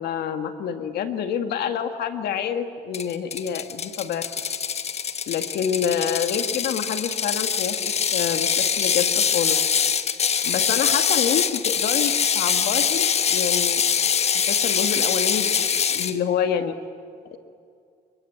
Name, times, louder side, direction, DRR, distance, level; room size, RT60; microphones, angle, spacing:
voice 1, 0.0-4.3 5.3-9.6 10.4-13.8 14.5-16.7, left 8 dB, 70° left, 8 dB, 2.0 m, -27 dB
Ratchet pawl, 2.9-16.1, left 7 dB, 40° left, 1.2 m, -23 dB
27.5 x 22.5 x 8.7 m, 2.4 s
cardioid pair, 110°, 17 cm